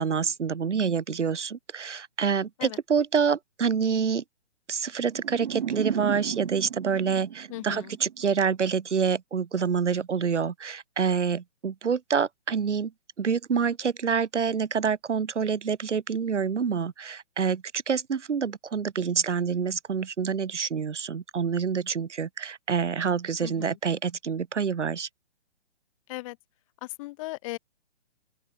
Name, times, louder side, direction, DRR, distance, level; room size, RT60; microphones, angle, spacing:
voice 1, 0.0-4.2 4.7-12.9 13.2-25.1, right 6 dB, 85° right, 1.2 m, -27 dB
sound 1, 5.1-8.3, right 9 dB, 50° right, 1.6 m, -34 dB
voice 2, 7.5-8.0 23.4-23.8 26.1-26.4 26.8-27.6, left 20 dB, 30° left, 3.1 m, -37 dB
open air
hypercardioid pair, 150°, 34 cm